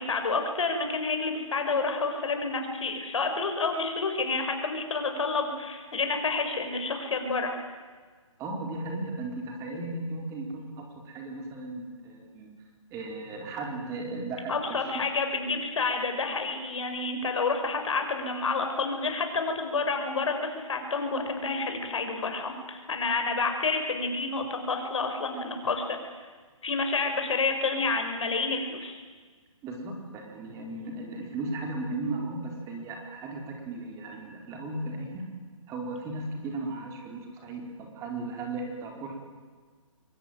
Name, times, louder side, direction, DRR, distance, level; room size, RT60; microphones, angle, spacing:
voice 1, 0.0-7.6 14.5-26.3 26.6-29.0, left 4 dB, 60° left, 5 dB, 5.9 m, -29 dB
voice 2, 8.4-12.5 12.9-14.9 29.6-35.2 35.7-39.2, right 2 dB, 20° right, 1 dB, 4.5 m, -36 dB
26.0 x 23.0 x 9.1 m, 1.5 s
figure-of-eight pair, 140°, 17 cm